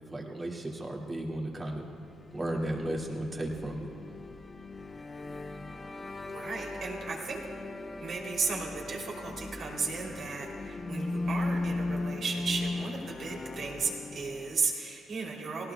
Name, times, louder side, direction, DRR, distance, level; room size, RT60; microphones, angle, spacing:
voice 1, 0.1-1.9 2.3-3.9, right 1 dB, 25° right, -1 dB, 2.1 m, -34 dB
sound 1, 1.8-14.7, left 2 dB, 30° left, 0.6 m, -38 dB
voice 2, 6.3-7.4 8.0-15.7, right 4 dB, 60° right, -2 dB, 2.9 m, -35 dB
18.0 x 17.5 x 2.2 m, 2.5 s
cardioid pair, 75°, 0 cm